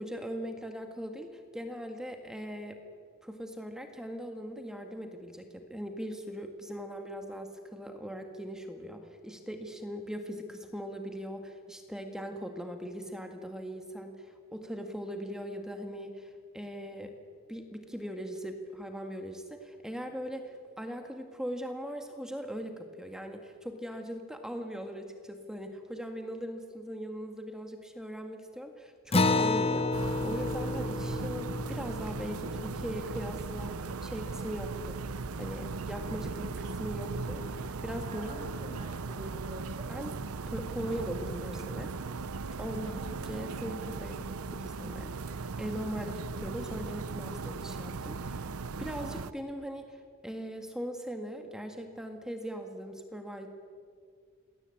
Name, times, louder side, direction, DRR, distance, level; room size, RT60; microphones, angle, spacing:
voice 1, 0.0-2.8 3.2-17.1 17.5-35.0 35.4-38.3 39.9-40.1 40.5-41.9 42.6-53.5, equal, 5° right, 5 dB, 1.8 m, -40 dB
Acoustic guitar, 29.1-34.0, left 3 dB, 25° left, 0.8 m, -31 dB
sound 1, 29.9-49.3, right 4 dB, 90° right, 0.8 m, -38 dB
voice 2, 38.1-39.9 42.7-43.1, right 1 dB, 35° right, 1 dB, 4.1 m, -46 dB
27.5 x 21.0 x 8.6 m, 2.1 s
head